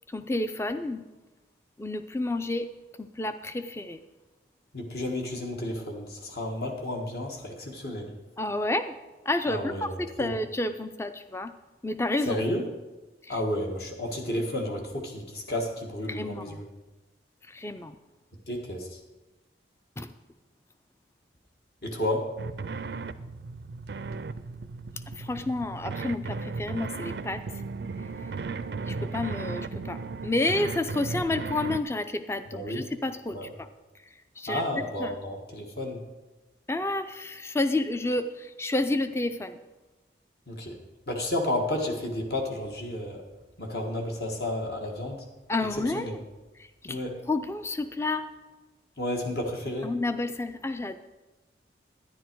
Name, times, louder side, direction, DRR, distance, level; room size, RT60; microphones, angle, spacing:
voice 1, 0.1-1.0 1.8-2.7 3.0-4.0 8.4-9.0 9.3-11.5 11.8-12.4 13.2-13.4 16.1-16.6 17.5-18.0 20.0-20.1 25.1-27.4 28.0-28.3 28.8-33.7 34.4-34.6 35.0-35.2 36.7-39.6 45.5-46.2 46.6-48.3 49.8-51.1, left 2 dB, 15° left, 11 dB, 0.4 m, -30 dB
voice 2, 4.7-8.1 9.5-9.9 10.2-10.3 12.3-12.6 13.3-16.6 18.5-18.9 21.8-22.3 32.5-32.8 33.3-33.5 34.5-36.0 40.5-40.8 41.1-43.2 43.6-45.2 45.9-46.1 46.9-47.1 49.0-49.9, left 1 dB, 55° left, 1 dB, 1.5 m, -31 dB
sound 1, 22.4-31.8, right 4 dB, 60° right, 0.4 m, -36 dB
11.5 x 10.0 x 4.6 m, 1.1 s
head